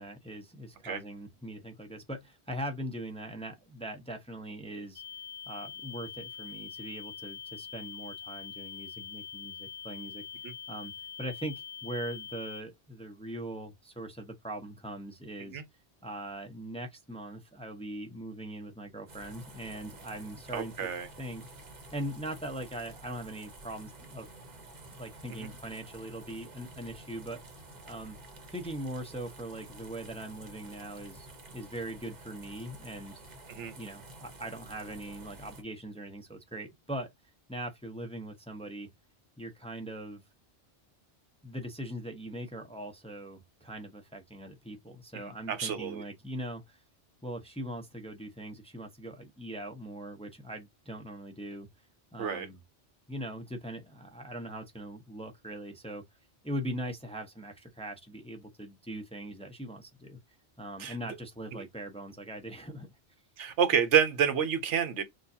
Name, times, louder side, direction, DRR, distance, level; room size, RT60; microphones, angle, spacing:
voice 1, 0.0-5.0 5.5-10.2 10.7-10.9 11.2-15.6 16.0-20.9 21.2-21.4 21.9-24.3 24.9-27.4 27.9-28.2 28.5-33.2 33.8-37.1 37.5-38.9 39.4-40.2 41.4-46.8 47.2-51.7 52.1-52.6 53.1-56.0 56.4-60.2 60.6-62.9, right 1 dB, 5° left, 0.7 m, -41 dB
sound 1, 5.0-12.6, left 8 dB, 85° left, 0.9 m, -44 dB
sound 2, 19.1-35.6, right 2 dB, 40° right, 1.0 m, -50 dB
voice 2, 20.5-21.1 25.3-25.5 33.5-33.7 45.2-46.0 52.2-52.5 60.8-61.0 63.4-65.0, right 8 dB, 80° right, 1.1 m, -29 dB
6.5 x 2.5 x 2.7 m
omnidirectional pair, 1.2 m